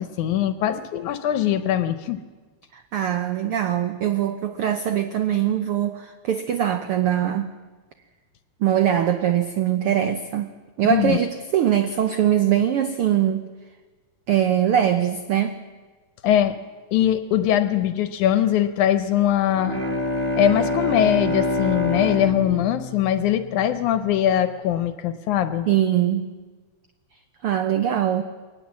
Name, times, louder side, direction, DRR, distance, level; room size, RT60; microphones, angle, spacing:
voice 1, 0.0-2.2 10.9-11.2 16.2-16.6 16.9-19.8 20.3-25.7, left 10 dB, 75° left, 2.1 m, -21 dB
voice 2, 2.7-7.5 8.6-13.5 14.3-15.6 25.7-26.3 27.4-28.2, right 10 dB, 90° right, 1.2 m, -22 dB
Bowed string instrument, 19.5-24.0, left 2 dB, 30° right, 1.3 m, -26 dB
22.0 x 19.0 x 7.3 m
omnidirectional pair, 3.6 m